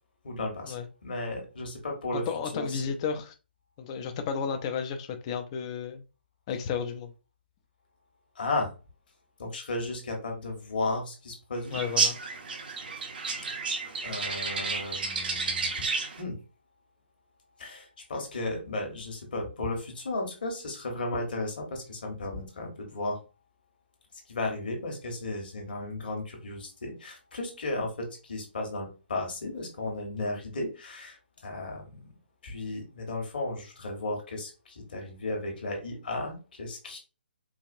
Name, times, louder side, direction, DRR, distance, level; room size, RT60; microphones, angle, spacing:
voice 1, 0.2-2.3 2.5-2.8 8.3-8.7 9.4-11.8 13.4-13.6 14.0-15.8 16.2-16.4 17.6-23.2 24.3-32.1 32.4-37.0, left 2 dB, 55° left, 1.4 m, -34 dB
voice 2, 2.1-3.3 3.8-6.0 6.5-7.1 11.7-12.2, left 6 dB, 30° left, 0.5 m, -32 dB
sound 1, 11.7-16.2, right 4 dB, 55° right, 0.9 m, -31 dB
4.7 x 2.5 x 2.6 m
figure-of-eight pair, 135°, 6 cm